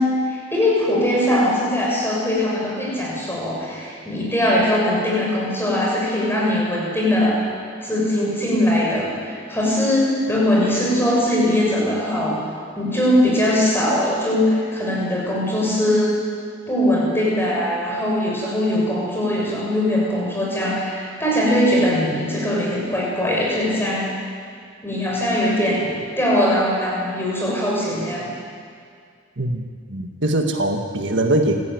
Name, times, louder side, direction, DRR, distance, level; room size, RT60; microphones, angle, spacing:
voice 1, 0.0-7.4 7.8-12.4 12.8-16.2 16.7-24.1 24.8-28.3, left 1 dB, 10° left, -4 dB, 7.0 m, -21 dB
voice 2, 29.9-31.7, right 1 dB, 60° right, 3 dB, 1.6 m, -21 dB
25.5 x 15.5 x 9.4 m, 2.2 s
head